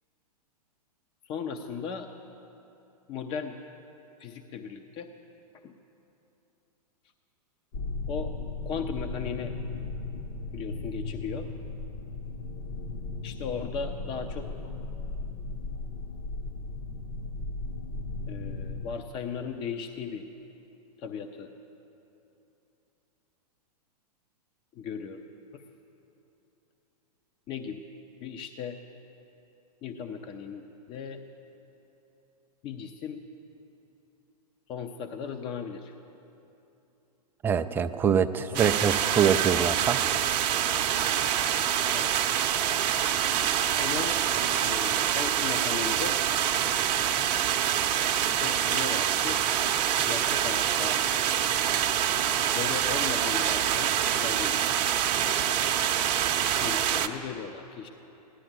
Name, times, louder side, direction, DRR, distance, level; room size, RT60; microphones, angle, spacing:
voice 1, 1.2-2.1 3.1-3.6 4.2-5.1 5.6-5.7 8.1-8.3 8.6-9.5 10.5-11.5 13.2-14.6 18.3-20.3 21.0-21.5 24.7-25.2 25.5-25.6 27.5-27.8 28.2-28.8 29.8-31.2 32.6-33.2 34.7-35.9 38.4-38.7 41.9-42.1 43.8-44.2 44.6-46.2 48.2-49.4 50.0-51.0 52.5-54.6 56.6-57.9, left 6 dB, 25° left, 6 dB, 0.7 m, -37 dB
sound 1, 7.7-19.0, left 3 dB, 45° left, 1.1 m, -36 dB
voice 2, 37.4-40.0, right 7 dB, 10° right, 10 dB, 0.3 m, -24 dB
sound 2, 38.5-57.1, right 10 dB, 30° right, 0.8 m, -26 dB
16.0 x 11.5 x 7.5 m, 2.9 s
figure-of-eight pair, 110°, 21 cm